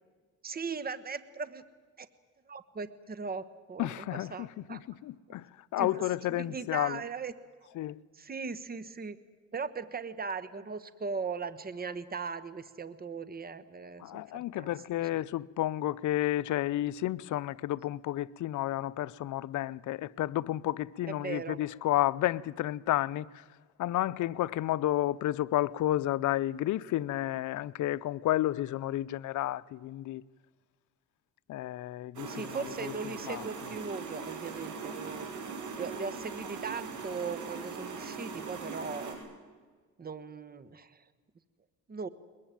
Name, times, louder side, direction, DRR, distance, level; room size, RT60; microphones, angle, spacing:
voice 1, 0.4-1.6 2.0-2.1 2.5-4.8 5.3-5.4 5.8-6.0 6.3-7.3 8.1-9.2 9.5-14.7 15.1-15.2 21.1-21.6 32.3-35.3 35.7-39.2 40.0-41.0 41.9-42.1, right 5 dB, 30° right, 1.3 m, -39 dB
voice 2, 3.8-5.5 5.7-7.0 7.8-8.0 14.0-23.4 23.8-30.2 31.5-32.9 33.3-33.4, left 14 dB, 75° left, 0.7 m, -31 dB
sound 1, 32.1-39.1, right 4 dB, 70° right, 6.1 m, -40 dB
21.5 x 21.5 x 9.1 m
cardioid pair, 90°, 30 cm